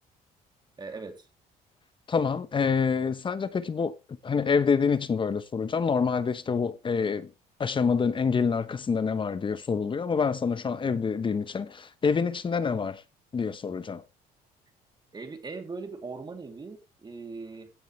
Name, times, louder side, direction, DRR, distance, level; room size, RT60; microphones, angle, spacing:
voice 1, 0.8-1.3 15.1-17.7, right 4 dB, 25° right, 2.9 m, -40 dB
voice 2, 2.1-3.9 4.2-7.3 7.6-13.0 13.3-14.0, left 5 dB, 30° left, 1.0 m, -27 dB
16.5 x 7.6 x 3.2 m
cardioid pair, 110°, 17 cm